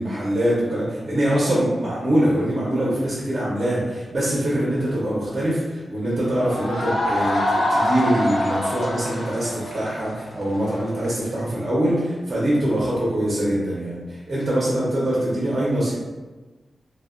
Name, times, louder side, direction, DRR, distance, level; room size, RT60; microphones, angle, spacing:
voice 1, 0.0-15.9, right 1 dB, 30° right, -7 dB, 0.5 m, -23 dB
sound 1, 6.4-11.1, left 1 dB, 90° left, 0.7 m, -25 dB
2.6 x 2.0 x 2.4 m, 1.2 s
wide cardioid pair, 165°, 0 cm